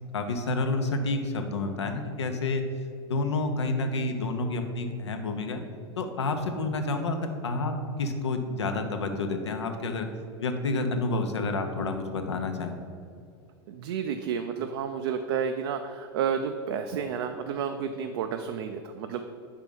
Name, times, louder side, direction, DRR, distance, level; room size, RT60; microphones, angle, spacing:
voice 1, 0.1-2.7 3.0-5.6 6.0-7.2 7.4-10.1 10.4-12.8, left 3 dB, 85° left, 6 dB, 0.7 m, -29 dB
voice 2, 13.7-19.2, right 7 dB, 65° right, 6 dB, 0.4 m, -31 dB
5.1 x 4.5 x 5.2 m, 2.4 s
hypercardioid pair, 95°, 14 cm